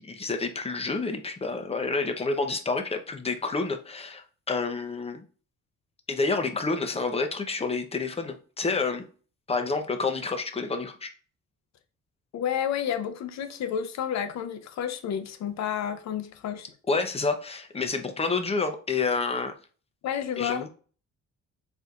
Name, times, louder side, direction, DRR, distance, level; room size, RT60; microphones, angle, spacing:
voice 1, 0.0-5.2 6.1-9.0 9.5-11.1 16.9-19.5 20.4-20.7, left 4 dB, 20° left, 0.7 m, -29 dB
voice 2, 12.3-16.7 20.0-20.7, left 9 dB, 65° left, 0.7 m, -30 dB
4.3 x 3.4 x 2.4 m
cardioid pair, 90°, 30 cm